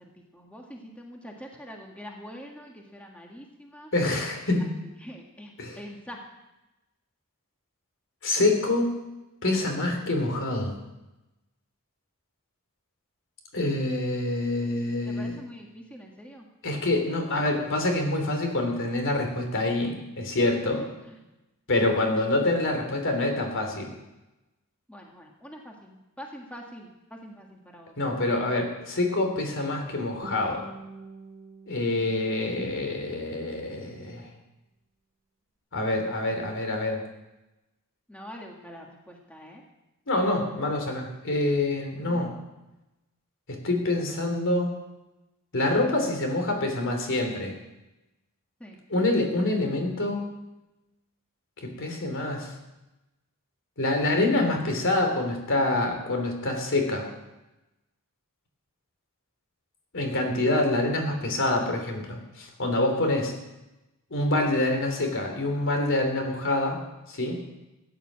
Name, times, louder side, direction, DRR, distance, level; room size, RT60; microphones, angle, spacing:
voice 1, 0.0-3.9 5.0-6.2 15.1-16.4 20.7-21.1 24.9-27.9 38.1-39.6 48.6-48.8, equal, 5° left, 0 dB, 1.6 m, -44 dB
voice 2, 3.9-4.7 5.6-5.8 8.2-9.0 9.4-10.7 13.5-15.4 16.6-20.8 21.7-23.9 28.0-30.6 31.7-34.3 35.7-37.0 40.1-42.3 43.6-44.7 45.5-47.5 48.9-50.3 51.6-52.5 53.8-57.1 59.9-63.3 64.1-66.8 67.1-67.4, left 2 dB, 60° left, 4 dB, 3.3 m, -26 dB
Guitar, 30.2-33.2, right 3 dB, 25° right, 1.7 m, -46 dB
16.0 x 9.4 x 7.5 m, 1.0 s
head